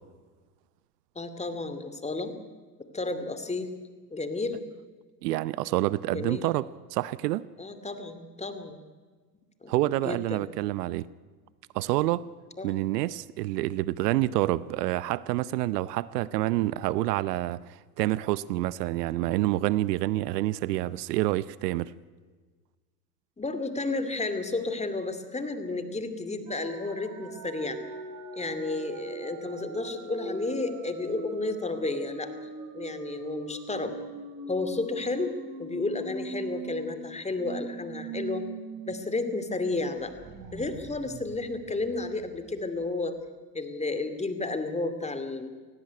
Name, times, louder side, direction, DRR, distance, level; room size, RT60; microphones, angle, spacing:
voice 1, 1.2-2.3 2.8-3.8 4.1-4.6 6.1-6.4 7.6-8.8 9.6-9.7 10.0-10.4 12.6-12.8 23.4-27.8 28.3-34.0 34.5-38.5 38.9-40.1 40.5-43.2 43.5-45.5, left 3 dB, 15° left, 2.5 m, -32 dB
voice 2, 5.2-7.4 9.7-11.1 11.7-12.3 12.6-21.9, right 16 dB, 75° right, 0.8 m, -28 dB
sound 1, 26.5-38.9 39.3-39.4 39.7-42.4, right 3 dB, 40° right, 3.7 m, -41 dB
18.0 x 16.0 x 9.8 m
hypercardioid pair, 90°, 48 cm